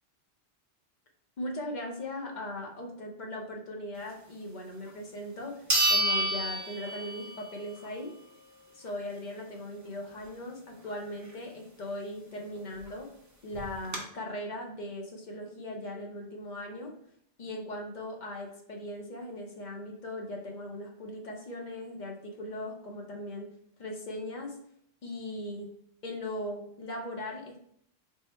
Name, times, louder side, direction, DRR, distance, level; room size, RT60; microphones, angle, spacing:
voice 1, 1.4-8.1 8.7-13.1 13.4-16.9 17.4-23.5 23.8-24.6 25.0-25.7 26.0-27.6, left 1 dB, 50° left, 1 dB, 0.8 m, -39 dB
sound 1, 4.9-5.0 5.7-7.5 7.8-7.9 12.6-12.7 12.9-13.0 13.5-14.0, right 1 dB, 20° right, 0.5 m, -28 dB
3.7 x 2.1 x 4.1 m, 0.67 s
omnidirectional pair, 1.1 m